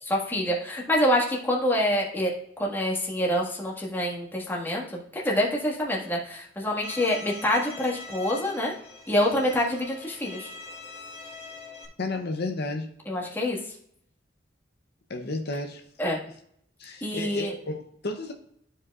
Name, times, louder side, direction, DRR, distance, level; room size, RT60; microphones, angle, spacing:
voice 1, 0.0-8.7 9.1-10.5 13.1-13.6 16.0-16.2 17.0-17.5, left 1 dB, 10° left, -3 dB, 1.6 m, -26 dB
Bowed string instrument, 6.8-11.9, left 3 dB, 35° left, 1.2 m, -43 dB
voice 2, 12.0-12.9 15.1-15.8 16.8-18.3, left 2 dB, 60° left, 4 dB, 0.7 m, -32 dB
12.0 x 5.0 x 2.4 m, 0.68 s
head